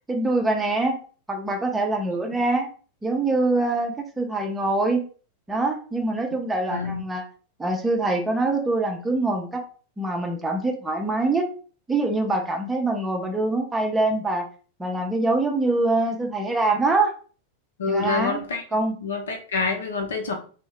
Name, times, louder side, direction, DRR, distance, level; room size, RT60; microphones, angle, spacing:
voice 1, 0.1-1.0 1.3-2.7 3.0-5.1 5.5-7.2 7.6-9.6 10.0-11.5 11.9-14.5 14.8-17.1 17.9-18.4 18.7-19.0, right 2 dB, 10° right, 2 dB, 0.6 m, -24 dB
voice 2, 6.7-7.0 17.8-18.6 19.0-20.3, left 4 dB, 65° left, 2 dB, 0.7 m, -26 dB
2.6 x 2.0 x 3.1 m, 0.39 s
figure-of-eight pair, 90°, 0 cm